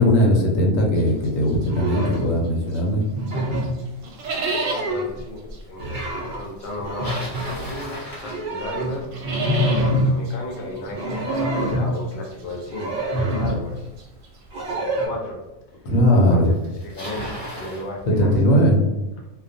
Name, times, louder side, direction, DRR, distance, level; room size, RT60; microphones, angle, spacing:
voice 1, 0.0-3.0 15.8-16.5 18.1-18.8, equal, 85° left, 1 dB, 1.0 m, -18 dB
sound 1, 0.9-3.0 3.3-14.7, right 3 dB, 85° right, 1.0 m, -34 dB
sound 2, 1.6-2.3 3.1-3.8 4.2-5.2 5.8-6.4 6.8-7.6 8.2-10.2 10.8-12.0 12.7-13.6 14.5-15.1, equal, 50° right, 0.6 m, -25 dB
voice 2, 4.5-5.4 5.7-9.1 9.6-13.9 14.7-15.4 16.3-16.4 16.8-18.6, left 1 dB, 60° left, -1 dB, 0.8 m, -34 dB
Bicycle, 6.7-9.0 14.1-14.2 15.0-15.1 16.1-16.2 16.4-17.9, equal, 30° left, 1.0 m, -35 dB
2.3 x 2.3 x 2.5 m, 1.0 s
omnidirectional pair, 1.3 m